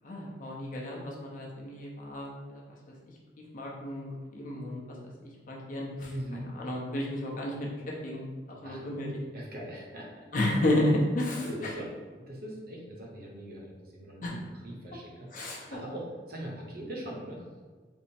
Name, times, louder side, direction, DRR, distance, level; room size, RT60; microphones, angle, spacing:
voice 1, 0.0-2.6 3.5-4.8 5.5-6.1 6.6-9.1 10.3-11.7 14.2-14.3 15.3-15.8, left 1 dB, 45° left, -3 dB, 0.7 m, -32 dB
voice 2, 6.1-6.5 8.6-8.8 9.3-10.3 11.4-11.9 12.2-17.4, right 1 dB, 55° right, -2 dB, 0.8 m, -41 dB
3.4 x 2.0 x 4.2 m, 1.4 s
head